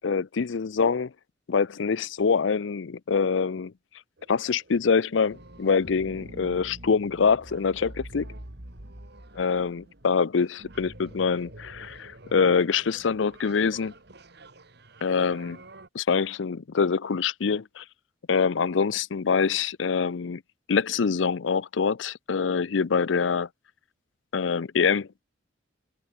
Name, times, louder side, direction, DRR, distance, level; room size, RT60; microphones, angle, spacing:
voice 1, 0.0-1.1 1.5-3.7 4.3-8.3 9.4-13.9 15.0-15.6 15.9-17.8 18.3-20.4 20.7-23.5 24.3-25.1, left 5 dB, 80° left, 0.5 m, -25 dB
sound 1, 4.2-15.9, right 1 dB, 60° right, 3.3 m, -47 dB
head